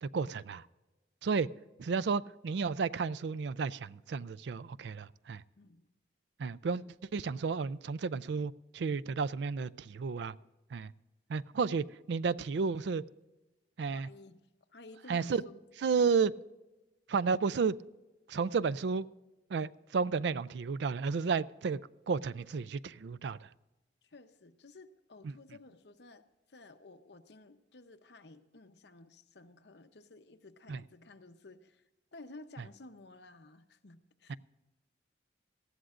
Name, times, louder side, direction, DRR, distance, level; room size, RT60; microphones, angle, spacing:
voice 1, 0.0-0.6 1.2-1.5 1.8-5.4 6.4-6.8 7.1-10.3 10.7-10.9 11.3-13.0 13.8-14.1 15.1-15.4 15.8-16.3 17.1-17.7 18.3-19.1 19.5-21.8 22.1-23.4 30.7-30.8 34.3-34.4, right 5 dB, 70° right, 0.4 m, -32 dB
voice 2, 5.6-5.9 6.7-6.9 10.2-10.5 13.9-15.6 15.9-16.0 24.0-31.8 32.1-34.4, left 2 dB, 70° left, 0.8 m, -54 dB
19.0 x 14.0 x 2.5 m
head